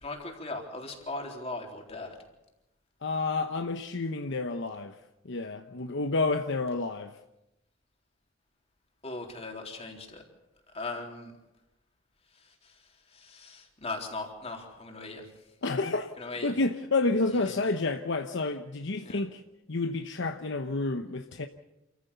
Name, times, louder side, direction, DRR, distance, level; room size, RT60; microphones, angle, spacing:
voice 1, 0.0-2.2 9.0-10.2 10.7-11.3 12.4-12.8 13.1-15.3 16.2-16.6 17.4-17.6 19.0-19.2, left 2 dB, 30° left, 3.7 m, -39 dB
voice 2, 3.0-5.0 5.2-7.1 15.6-16.1 16.4-19.4 19.7-21.5, left 3 dB, 65° left, 0.9 m, -29 dB
28.0 x 15.0 x 7.0 m
head